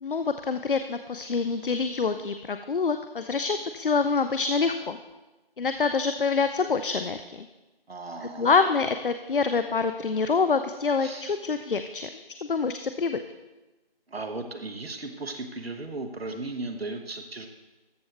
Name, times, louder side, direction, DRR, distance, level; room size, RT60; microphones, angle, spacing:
voice 1, 0.0-5.0 5.6-7.5 8.4-12.1 12.4-13.2, left 5 dB, 60° left, 9 dB, 0.5 m, -26 dB
voice 2, 7.9-8.5 11.0-11.4 14.1-17.5, right 2 dB, 80° right, 5 dB, 1.0 m, -36 dB
13.5 x 6.2 x 3.3 m, 1.1 s
figure-of-eight pair, 170°, 30 cm